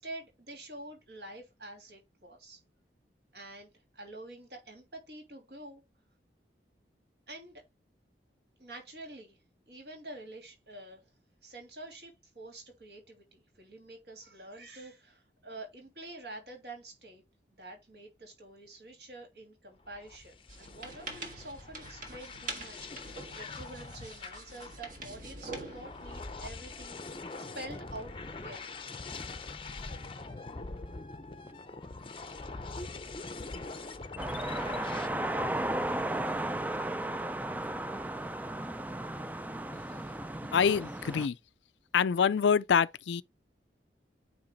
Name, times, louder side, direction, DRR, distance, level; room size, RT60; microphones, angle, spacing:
voice 1, 0.0-2.6 3.3-5.8 7.3-7.6 8.6-9.4 9.7-11.0 11.4-17.2 17.6-27.3 27.5-28.1 28.4-29.0, right 2 dB, 65° right, 3.0 m, -47 dB
sound 1, 19.8-35.1, left 3 dB, 30° left, 0.6 m, -43 dB
sound 2, 20.5-26.8, right 3 dB, 45° right, 1.6 m, -45 dB
sound 3, 34.2-41.3, right 1 dB, 10° right, 0.3 m, -34 dB
voice 2, 40.5-41.4 41.9-43.2, left 7 dB, 90° left, 0.4 m, -26 dB
8.8 x 3.0 x 4.0 m
head